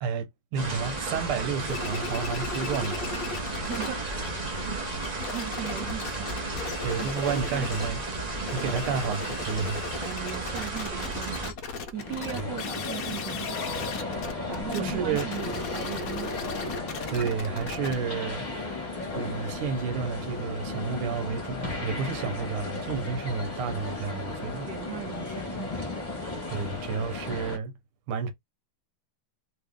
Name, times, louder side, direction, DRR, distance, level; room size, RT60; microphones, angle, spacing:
voice 1, 0.0-3.1 6.8-8.1 8.5-9.8 12.3-12.5 14.7-15.3 17.1-18.5 19.1-24.7 26.5-27.8 28.1-28.3, right 6 dB, 90° right, 1.7 m, -31 dB
sound 1, 0.6-11.5, right 2 dB, 40° right, 0.5 m, -33 dB
sound 2, 1.7-3.9 4.1-8.0 8.4-19.9, left 4 dB, 70° left, 0.8 m, -37 dB
voice 2, 3.6-4.3 5.0-6.6 7.0-7.7 8.6-8.9 10.0-13.6 14.5-16.3 24.7-25.7, right 9 dB, 65° right, 1.2 m, -38 dB
sound 3, 11.9-27.6, left 3 dB, 25° left, 1.2 m, -35 dB
3.3 x 3.0 x 3.5 m
omnidirectional pair, 2.3 m